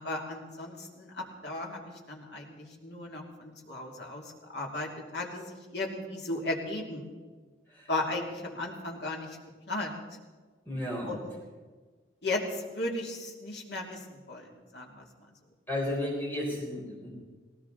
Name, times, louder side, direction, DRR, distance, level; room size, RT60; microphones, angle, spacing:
voice 1, 0.0-7.1 7.9-9.4 9.7-10.0 11.0-11.3 12.2-15.1, left 2 dB, 60° left, 0 dB, 2.6 m, -36 dB
voice 2, 10.7-11.1 15.7-17.1, left 1 dB, 10° left, -4 dB, 4.2 m, -33 dB
18.5 x 18.0 x 4.0 m, 1.4 s
head